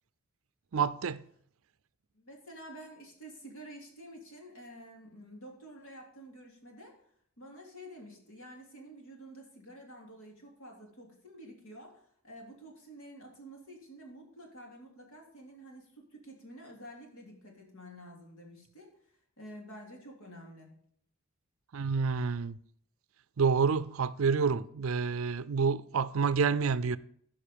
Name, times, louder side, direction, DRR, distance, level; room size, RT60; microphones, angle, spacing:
voice 1, 0.7-1.2 21.7-22.6 23.4-27.0, right 5 dB, 70° right, 0.5 m, -28 dB
voice 2, 2.1-6.9 7.4-18.9 19.4-20.7, right 1 dB, 70° left, 3.1 m, -50 dB
14.5 x 5.7 x 5.2 m
head